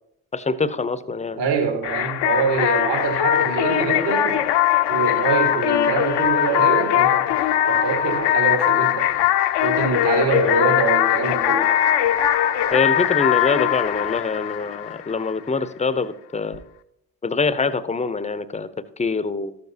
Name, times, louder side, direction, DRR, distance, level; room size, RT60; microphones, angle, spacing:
voice 1, 0.3-1.4 10.3-10.6 12.7-16.6 17.2-18.7 19.0-19.6, left 4 dB, 15° left, 14 dB, 0.6 m, -24 dB
voice 2, 1.4-4.5 4.9-9.2 9.6-11.7, right 5 dB, 60° right, 4 dB, 1.8 m, -24 dB
sound 1, 1.8-15.3, left 11 dB, 60° left, 0.7 m, -20 dB
13.0 x 6.9 x 2.7 m, 0.75 s
hypercardioid pair, 40°, 47 cm